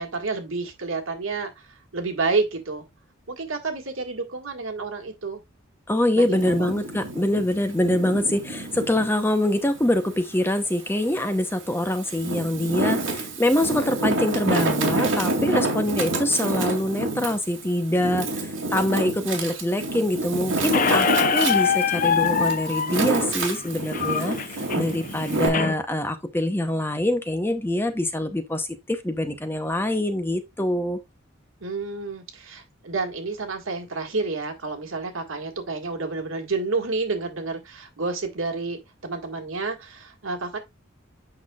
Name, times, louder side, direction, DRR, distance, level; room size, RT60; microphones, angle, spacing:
voice 1, 0.0-1.5 1.9-2.8 3.3-5.4 6.1-6.7 31.6-40.6, right 3 dB, 80° right, 1.9 m, -29 dB
voice 2, 5.9-31.0, left 1 dB, 10° left, 0.8 m, -24 dB
Wind, 6.3-9.1 9.6-10.9 11.5-25.5, right 2 dB, 65° right, 2.7 m, -28 dB
Squeak, 20.7-25.7, left 6 dB, 40° left, 0.4 m, -24 dB
8.6 x 5.9 x 2.4 m
head